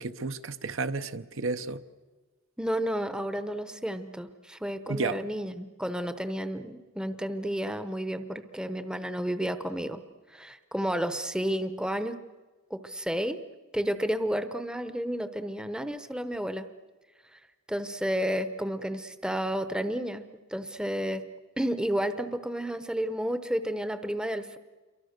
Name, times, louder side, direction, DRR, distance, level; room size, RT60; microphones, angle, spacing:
voice 1, 0.0-1.8 4.9-5.2, right 3 dB, 65° right, 10 dB, 0.8 m, -32 dB
voice 2, 2.6-10.0 10.3-12.1 12.7-13.4 13.7-16.7 17.3-17.4 17.7-21.2 21.6-24.6, equal, 5° right, 10 dB, 0.8 m, -31 dB
28.5 x 23.5 x 6.6 m, 1.3 s
head